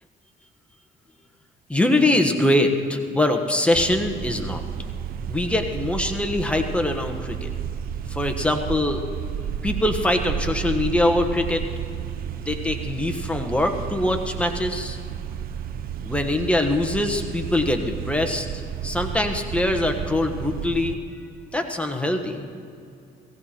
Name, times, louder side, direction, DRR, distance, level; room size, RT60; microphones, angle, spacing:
voice 1, 1.7-4.6 5.3-7.5 8.1-9.0 9.6-11.6 12.4-15.0 16.0-18.5 18.8-21.0 21.5-22.4, left 1 dB, 5° left, 4 dB, 1.2 m, -23 dB
sound 1, 3.7-21.0, right 8 dB, 60° right, 0.7 m, -32 dB
17.0 x 16.5 x 4.3 m, 2.5 s
cardioid pair, 110°, 17 cm